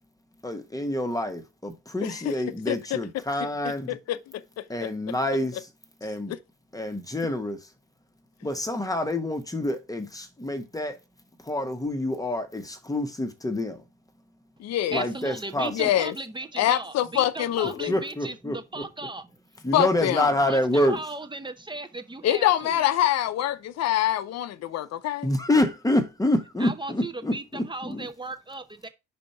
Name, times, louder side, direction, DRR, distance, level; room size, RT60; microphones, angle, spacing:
voice 1, 0.4-3.9 4.7-5.7 6.0-6.3 6.7-7.6 8.4-11.0 11.5-13.8 14.9-15.7 17.9-18.6 19.6-21.0 25.2-28.1, left 1 dB, 10° left, 1.2 m, -27 dB
voice 2, 2.0-2.4 2.7-3.0 3.9-4.9 6.3-6.4 14.6-15.0 15.7-16.1 16.6-18.0 19.7-20.3 22.2-25.3, left 12 dB, 55° left, 0.7 m, -25 dB
voice 3, 14.9-19.3 20.4-22.8 26.6-28.9, right 2 dB, 15° right, 1.0 m, -36 dB
5.1 x 4.4 x 5.4 m
supercardioid pair, 80°, 31 cm